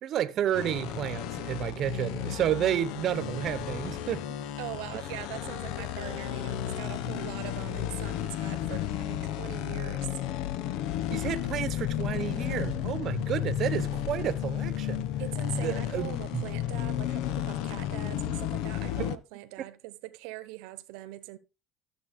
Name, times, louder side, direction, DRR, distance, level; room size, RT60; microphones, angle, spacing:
voice 1, 0.0-4.2 7.1-7.3 11.1-15.0 15.5-16.4, right 11 dB, 50° right, 1.0 m, -31 dB
sound 1, 0.6-19.2, left 11 dB, 80° left, 0.9 m, -33 dB
voice 2, 4.6-10.2 15.2-21.4, right 17 dB, 85° right, 1.0 m, -42 dB
13.0 x 7.6 x 3.6 m
cardioid pair, 130°, 0 cm